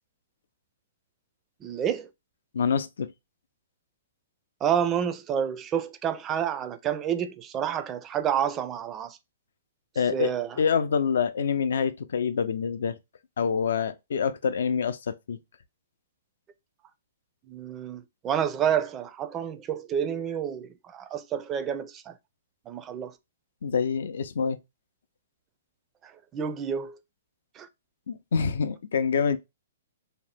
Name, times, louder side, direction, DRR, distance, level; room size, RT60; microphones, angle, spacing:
voice 1, 1.6-2.1 4.6-9.2 10.1-10.6 17.5-22.1 22.7-23.1 26.0-27.0 27.6-27.7, right 8 dB, 20° right, 0.4 m, -29 dB
voice 2, 2.5-3.1 10.0-13.0 13.4-15.4 23.6-24.6 28.1-29.4, left 6 dB, 75° left, 0.4 m, -26 dB
2.7 x 2.0 x 3.4 m
hypercardioid pair, 140°, 0 cm